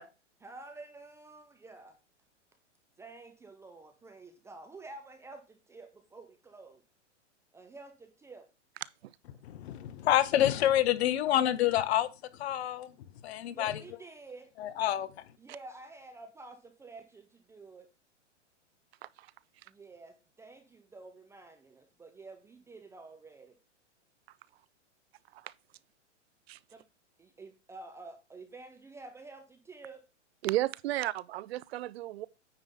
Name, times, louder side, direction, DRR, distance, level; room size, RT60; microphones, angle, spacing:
voice 1, 0.4-2.0 3.0-6.8 7.5-8.5 13.5-14.5 15.4-17.9 19.7-23.6 26.7-26.8 27.2-30.0, right 3 dB, 5° right, 0.6 m, -50 dB
voice 2, 9.4-12.1 12.4-12.9 13.2-13.7 14.6-15.1, left 12 dB, 60° left, 0.9 m, -27 dB
voice 3, 30.4-32.3, right 15 dB, 55° right, 0.6 m, -32 dB
9.2 x 3.6 x 5.3 m
hypercardioid pair, 135°, 36 cm